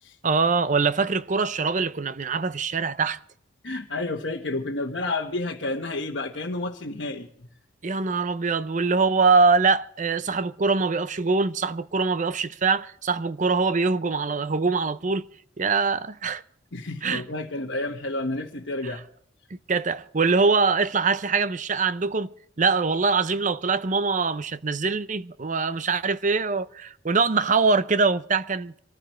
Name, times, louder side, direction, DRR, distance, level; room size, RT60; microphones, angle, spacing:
voice 1, 0.2-3.2 7.8-15.3 15.6-16.4 17.0-17.2 18.8-18.9 19.7-22.3 22.6-28.8, right 4 dB, 40° right, 0.7 m, -23 dB
voice 2, 3.6-7.3 16.7-19.0, left 2 dB, 65° left, 1.3 m, -30 dB
26.0 x 14.5 x 3.2 m
head